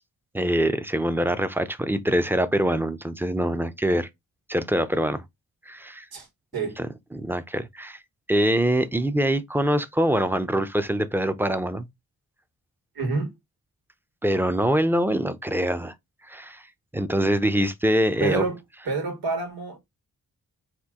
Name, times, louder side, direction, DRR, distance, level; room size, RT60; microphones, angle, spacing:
voice 1, 0.3-4.1 4.5-5.2 5.7-6.1 6.8-6.9 7.1-8.0 8.3-11.9 14.2-15.9 16.3-16.6 16.9-18.4, right 1 dB, 5° right, 0.6 m, -24 dB
voice 2, 13.0-13.3 18.2-18.6 18.9-19.8, right 3 dB, 90° right, 1.7 m, -27 dB
4.5 x 2.7 x 3.7 m
cardioid pair, 75°, 36 cm